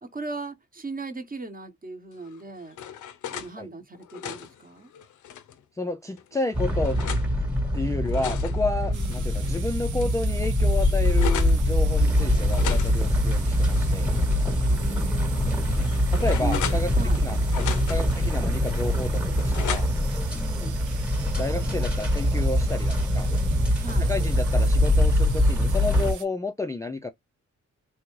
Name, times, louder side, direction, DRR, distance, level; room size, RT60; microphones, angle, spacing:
voice 1, 0.0-2.8 3.3-4.9 8.8-9.2 14.7-15.9 16.4-16.6 16.9-17.2 18.0-18.4 20.3-20.8 23.8-24.1, right 3 dB, 30° right, 0.9 m, -38 dB
sound 1, 2.2-3.5 3.9-5.6 6.2-7.3 7.9-9.6 10.0-10.1 10.4-11.6 12.5-14.3 14.7-14.8 15.4-17.2 17.5-18.2 18.7-20.2, left 9 dB, 85° left, 0.5 m, -37 dB
voice 2, 5.8-7.0 7.7-14.1 16.1-19.9 21.4-23.3 24.0-27.1, left 2 dB, 10° left, 0.3 m, -31 dB
sound 2, 6.5-26.1, equal, 5° right, 1.1 m, -23 dB
sound 3, 8.9-26.3, right 8 dB, 85° right, 0.7 m, -44 dB
3.4 x 2.4 x 3.0 m
cardioid pair, 85°, 30 cm